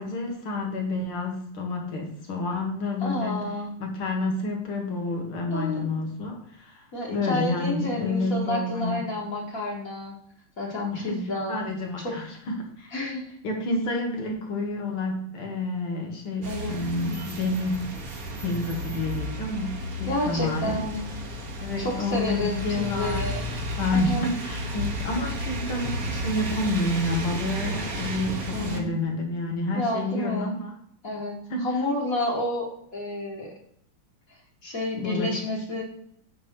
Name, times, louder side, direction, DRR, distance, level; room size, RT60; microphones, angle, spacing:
voice 1, 0.0-3.4 3.8-9.1 10.9-11.2 11.5-12.9 13.4-18.0 18.4-20.8 21.6-30.8 31.5-31.7 35.0-35.3, left 2 dB, 80° left, 1 dB, 2.7 m, -29 dB
voice 2, 3.0-3.7 5.5-5.9 6.9-10.2 10.6-11.6 12.0-12.2 12.9-13.2 16.5-16.8 20.0-21.0 21.8-23.4 23.9-24.3 28.5-28.9 29.7-30.5 31.0-33.5 34.6-35.8, left 1 dB, 40° left, -3 dB, 2.0 m, -30 dB
sound 1, 16.4-28.8, equal, 45° right, 1.6 m, -33 dB
9.0 x 3.6 x 6.0 m, 0.67 s
omnidirectional pair, 2.3 m